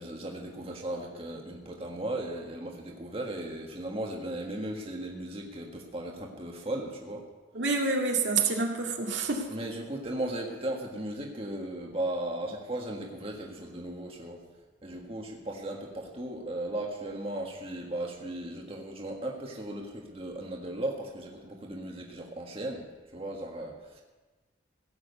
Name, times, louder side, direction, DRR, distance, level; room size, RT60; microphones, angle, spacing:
voice 1, 0.0-7.2 9.5-14.4 14.8-22.8 23.1-24.0, right 1 dB, 30° right, 0 dB, 1.6 m, -36 dB
voice 2, 7.5-9.5, right 4 dB, 75° right, 0 dB, 2.1 m, -27 dB
16.5 x 7.7 x 8.2 m, 1.2 s
head